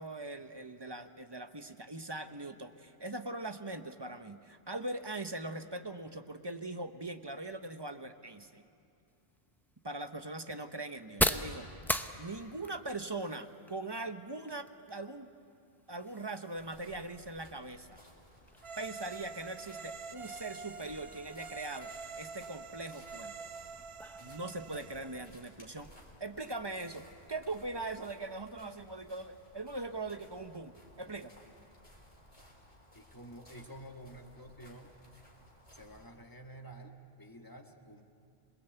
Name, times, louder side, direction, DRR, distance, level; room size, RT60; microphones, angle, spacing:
voice 1, 0.0-8.6 9.8-11.7 12.2-15.3 15.9-18.0 18.8-21.9 22.2-23.3 24.2-25.9 26.2-30.7 31.0-31.3, right 2 dB, 25° right, 8 dB, 0.8 m, -41 dB
sound 1, 9.1-26.7, equal, ahead, 0.6 m, -42 dB
sound 2, 16.5-36.1, equal, 35° left, 3.9 m, -59 dB
sound 3, 18.6-25.3, right 5 dB, 75° right, 1.4 m, -47 dB
voice 2, 32.9-34.9 35.7-38.0, right 1 dB, 20° left, 3 dB, 1.7 m, -50 dB
27.0 x 21.0 x 8.1 m, 2.7 s
omnidirectional pair, 1.1 m